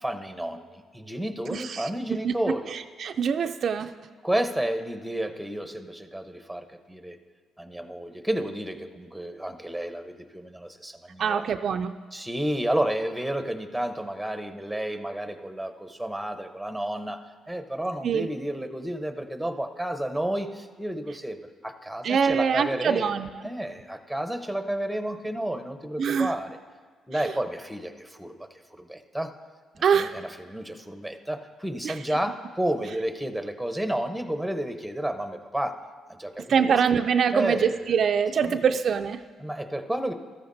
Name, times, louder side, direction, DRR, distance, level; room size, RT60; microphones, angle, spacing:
voice 1, 0.0-0.6 0.9-2.7 4.2-7.2 7.6-11.4 12.1-17.2 17.5-23.1 23.4-26.6 27.1-29.3 29.8-35.8 36.1-36.8 37.3-37.9 38.5-38.7 39.4-40.1, right 1 dB, ahead, 7 dB, 0.8 m, -31 dB
voice 2, 1.5-2.3 2.7-3.9 11.2-12.0 18.0-18.3 22.0-23.3 26.0-26.3 27.1-27.3 29.8-30.1 31.8-32.0 36.5-39.2, right 7 dB, 55° right, 7 dB, 0.3 m, -24 dB
13.5 x 13.5 x 2.6 m, 1.5 s
cardioid pair, 90°, 0 cm